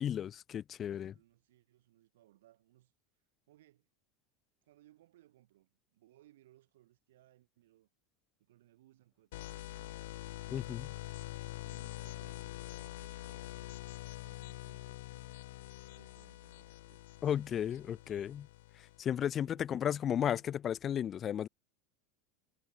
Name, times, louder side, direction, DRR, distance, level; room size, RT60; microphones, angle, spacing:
voice 1, 0.0-1.1 10.5-10.9 17.2-18.5 19.0-21.5, left 9 dB, 25° left, 0.3 m, -34 dB
voice 2, 0.8-2.9 3.5-3.9 4.6-7.9 8.4-10.0 11.6-13.8 14.2-15.7 15.9-17.1 17.4-18.1 19.3-20.4, right 15 dB, 90° right, 6.1 m, -66 dB
sound 1, 9.3-19.0, left 17 dB, 75° left, 1.3 m, -45 dB
supercardioid pair, 155°, 0 cm